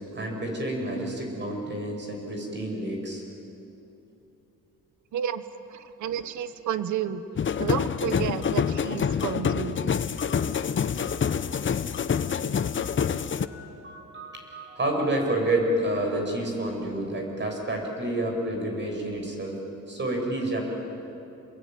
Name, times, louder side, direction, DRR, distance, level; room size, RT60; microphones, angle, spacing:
voice 1, 0.1-3.2 6.0-6.1 13.2-19.6 19.9-20.7, right 1 dB, 35° right, 1 dB, 7.8 m, -29 dB
voice 2, 5.1-5.4 5.7-7.2 7.6-9.8, right 9 dB, 75° right, 12 dB, 1.3 m, -31 dB
sound 1, 7.4-13.5, left 7 dB, 40° left, 1.0 m, -26 dB
28.5 x 22.0 x 9.6 m, 2.9 s
cardioid pair, 90°, 30 cm